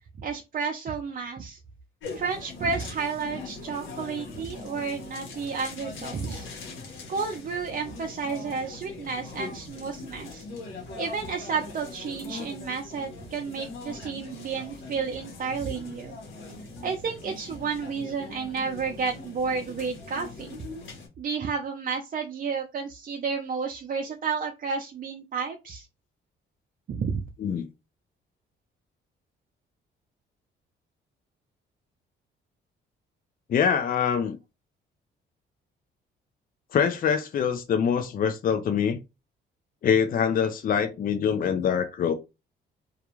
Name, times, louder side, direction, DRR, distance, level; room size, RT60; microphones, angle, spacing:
voice 1, 0.2-1.6 2.1-6.5 7.1-10.4 11.0-16.1 16.8-20.6 21.2-25.9 26.9-27.2, right 5 dB, 45° right, 0.5 m, -31 dB
sound 1, 2.0-21.1, left 3 dB, 75° left, 1.0 m, -41 dB
voice 2, 33.5-34.4 36.7-39.0 39.8-42.1, left 7 dB, 45° left, 0.5 m, -24 dB
2.4 x 2.3 x 3.0 m
cardioid pair, 90°, 20 cm